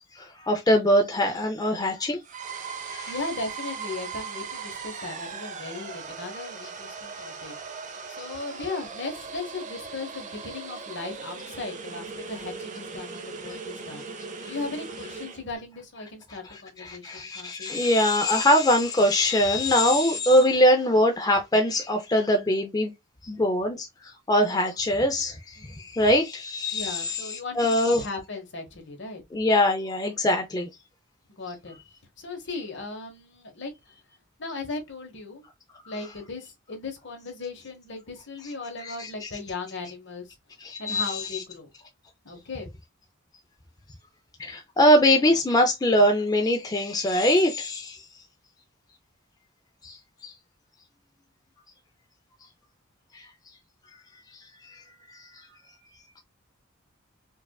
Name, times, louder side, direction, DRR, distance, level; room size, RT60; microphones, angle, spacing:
voice 1, 0.2-2.2 2.9-3.1 16.8-22.9 23.2-27.3 27.5-28.0 29.3-30.7 38.8-39.3 40.6-41.4 44.4-48.0 49.8-50.0 50.2-50.3 53.1-53.2, left 1 dB, 20° left, 0.4 m, -22 dB
sound 1, 2.2-15.4, right 5 dB, 40° right, 0.5 m, -38 dB
voice 2, 3.1-17.7 20.1-20.2 25.6-25.9 26.7-29.2 31.4-31.8 32.2-33.7 34.4-35.5 35.9-40.3 40.8-41.7 42.2-42.7, left 3 dB, 60° left, 1.2 m, -37 dB
4.6 x 2.4 x 2.2 m
head